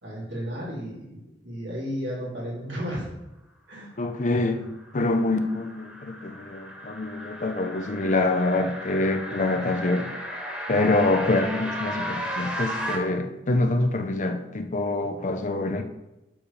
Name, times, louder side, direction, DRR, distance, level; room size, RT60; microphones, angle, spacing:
voice 1, 0.0-3.1 3.7-3.9, equal, 85° right, -5 dB, 3.4 m, -33 dB
voice 2, 4.0-10.1 10.7-15.8, left 2 dB, 45° left, 6 dB, 0.7 m, -25 dB
sound 1, 4.6-13.0, equal, 5° right, 1.8 m, -35 dB
7.2 x 5.2 x 6.8 m, 0.95 s
head